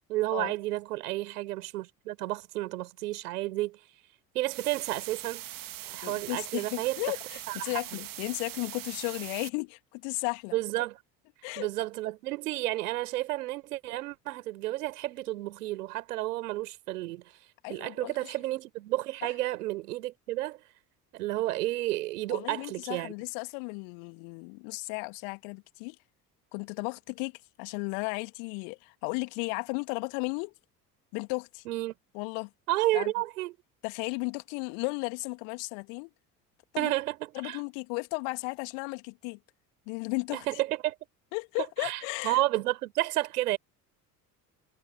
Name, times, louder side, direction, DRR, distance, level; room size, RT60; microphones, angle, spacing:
voice 1, 0.1-3.8 4.3-5.4 5.9-7.0 7.5-7.8 10.5-11.0 11.6-17.2 17.7-20.6 21.1-23.1 31.7-31.9 32.7-33.5 36.8-37.2 37.4-37.6 40.3-40.9 41.8-43.6, right 17 dB, 70° right, 4.7 m, -31 dB
sound 1, 4.5-9.5, right 14 dB, 45° right, 2.2 m, -42 dB
voice 2, 6.0-10.6 11.4-11.7 17.6-18.3 22.3-26.0 26.5-30.5 31.1-31.6 32.1-32.5 32.9-33.1 33.8-36.1 36.7-36.9 37.3-39.4 39.9-40.5 41.3-42.4, left 40 dB or more, 60° left, 2.5 m, -35 dB
figure-of-eight pair, 60°, 48 cm